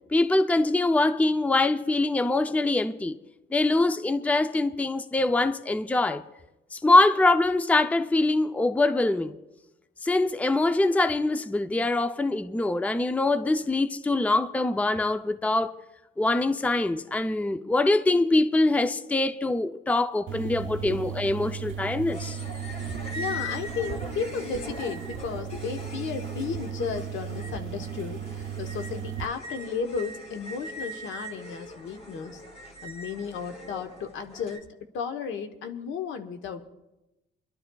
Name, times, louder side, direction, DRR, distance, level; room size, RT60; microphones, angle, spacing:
voice 1, 0.1-3.2 3.5-6.2 6.7-9.3 10.0-15.7 16.2-22.4, left 2 dB, 5° left, 0.5 m, -24 dB
sound 1, 20.3-29.3, right 9 dB, 75° right, 0.6 m, -36 dB
sound 2, 22.1-34.6, left 1 dB, 30° left, 2.4 m, -41 dB
voice 2, 23.1-32.4 32.8-36.7, left 6 dB, 75° left, 1.1 m, -34 dB
28.5 x 12.0 x 2.3 m
cardioid pair, 90°, 20 cm